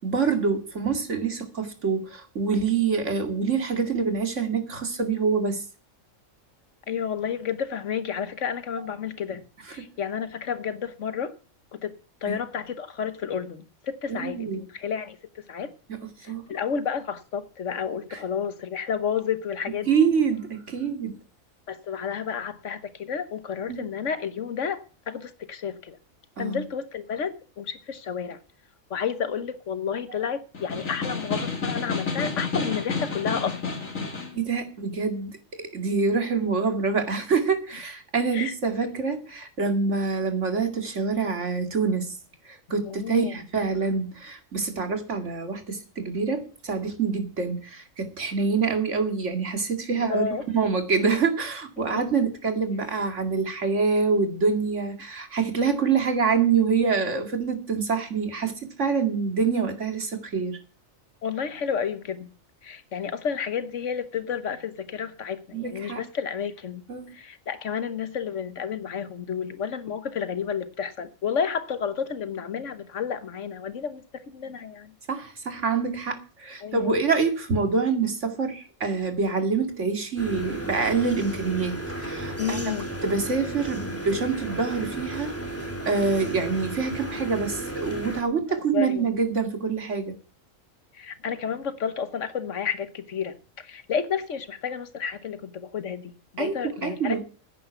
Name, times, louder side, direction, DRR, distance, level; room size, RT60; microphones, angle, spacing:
voice 1, 0.0-5.6 12.3-12.4 14.1-14.6 15.9-16.0 16.3-16.4 18.1-18.2 19.9-21.2 23.7-23.8 26.4-26.6 30.1-30.2 34.3-42.2 42.4-50.2 50.5-60.6 65.5-66.0 66.9-67.1 75.1-82.6 83.0-85.3 85.9-90.1 96.4-97.2, right 5 dB, 65° right, 2.7 m, -26 dB
voice 2, 6.9-11.3 11.7-15.2 15.5-15.7 16.2-19.9 21.7-26.0 26.4-28.4 28.9-33.8 38.3-38.5 42.9-43.3 49.9-50.4 51.9-52.0 61.2-62.3 62.6-66.8 67.1-74.9 76.6-76.9 82.4-82.9 88.5-89.1 90.9-97.2, left 7 dB, 70° left, 1.4 m, -31 dB
Snare drum, 30.5-34.4, left 4 dB, 85° left, 2.9 m, -30 dB
sound 1, 80.2-88.2, right 1 dB, 10° left, 2.5 m, -34 dB
10.0 x 9.9 x 8.0 m
omnidirectional pair, 1.3 m